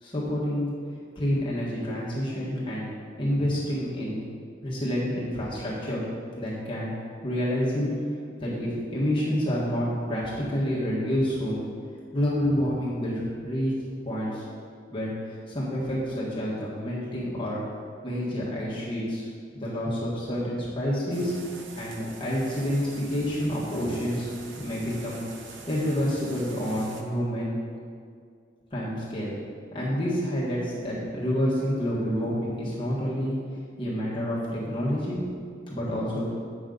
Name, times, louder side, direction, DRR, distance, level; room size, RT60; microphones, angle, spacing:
voice 1, 0.0-0.7 1.1-2.9 3.2-4.2 4.6-6.0 6.4-6.9 7.2-7.9 8.4-11.6 12.1-13.7 14.0-14.4 14.9-17.6 18.0-19.3 19.5-21.3 21.8-24.3 24.6-25.2 25.7-27.6 28.7-29.3 29.7-33.4 33.8-35.2 35.7-36.3, equal, 25° left, -7 dB, 1.5 m, -28 dB
sound 1, 21.1-27.0, right 3 dB, 65° right, 0.8 m, -45 dB
9.3 x 6.2 x 3.9 m, 2.2 s
head